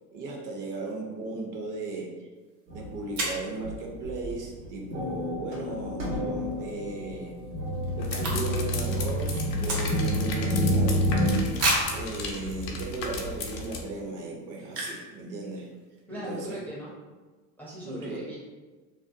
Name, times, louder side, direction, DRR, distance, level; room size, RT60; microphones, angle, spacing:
voice 1, 0.1-2.2 2.7-7.4 8.0-11.1 11.9-15.7 16.1-16.6 17.8-18.3, right 3 dB, 40° right, -1 dB, 0.6 m, -36 dB
sound 1, 2.5-2.6 3.1-3.5 6.4-6.7 7.0-7.1 7.3-8.8 9.0-10.3 10.7-10.8 11.6-12.0 12.7-12.8 13.3-13.5 14.7-15.1 15.4-15.5 15.7-16.0, right 2 dB, 60° right, 1.0 m, -30 dB
sound 2, 2.7-3.0 3.6-11.4, equal, 80° right, 1.1 m, -29 dB
sound 3, 8.0-13.8, left 3 dB, 80° left, 0.6 m, -36 dB
voice 2, 16.1-16.9 17.6-18.4, right 1 dB, 5° left, -7 dB, 0.5 m, -39 dB
2.5 x 2.2 x 2.6 m, 1.3 s
hypercardioid pair, 75°, 49 cm